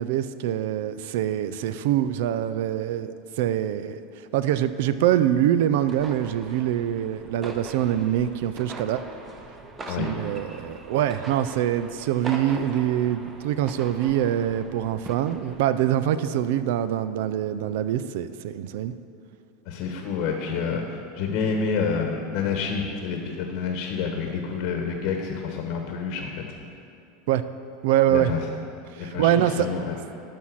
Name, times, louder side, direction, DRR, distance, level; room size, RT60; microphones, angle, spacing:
voice 1, 0.0-3.1 3.4-4.0 4.3-9.0 9.9-18.9 27.3-27.4 27.8-28.3 28.9-29.7, right 11 dB, 70° right, 13 dB, 0.4 m, -24 dB
sound 1, 5.8-15.9, right 2 dB, 25° right, 0.9 m, -41 dB
voice 2, 19.7-26.5 28.1-28.4 29.0-30.0, left 5 dB, 60° left, 3 dB, 1.1 m, -28 dB
12.0 x 4.3 x 6.3 m, 2.6 s
hypercardioid pair, 105°, 0 cm